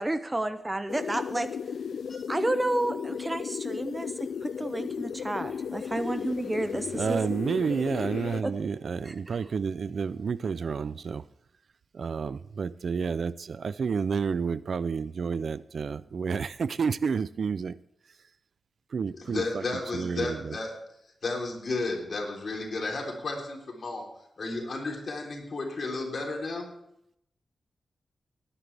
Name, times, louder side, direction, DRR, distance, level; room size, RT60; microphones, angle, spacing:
voice 1, 0.0-1.5 2.3-4.1 4.4-7.3 8.4-8.5 9.0-9.5, right 1 dB, 15° right, 0.6 m, -31 dB
sound 1, 0.9-8.4, left 7 dB, 85° left, 0.4 m, -35 dB
voice 2, 6.9-11.2 11.9-17.8 18.9-19.6 19.9-20.6, right 5 dB, 60° right, 0.4 m, -30 dB
voice 3, 19.2-20.7 21.2-24.1 24.4-26.7, left 3 dB, 50° left, 3.7 m, -33 dB
19.5 x 10.0 x 3.4 m
wide cardioid pair, 125°, 0 cm